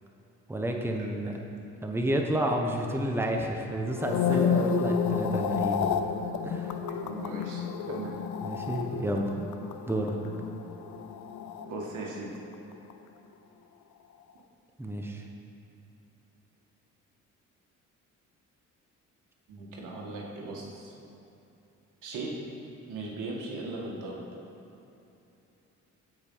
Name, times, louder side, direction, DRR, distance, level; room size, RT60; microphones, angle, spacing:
voice 1, 0.5-1.3 1.8-5.8 6.4-6.7 8.4-9.3 9.9-10.1 14.8-15.2, right 1 dB, 10° right, 1 dB, 1.1 m, -30 dB
voice 2, 1.0-1.4 4.5-4.6 7.0-8.1 11.7-12.3 19.5-20.9 22.0-22.3 22.9-24.2, right 3 dB, 85° right, -2 dB, 2.0 m, -38 dB
sound 1, 3.9-12.3 12.5-12.9, left 6 dB, 75° left, 0.7 m, -31 dB
15.5 x 5.3 x 5.6 m, 2.9 s
cardioid pair, 90°, 30 cm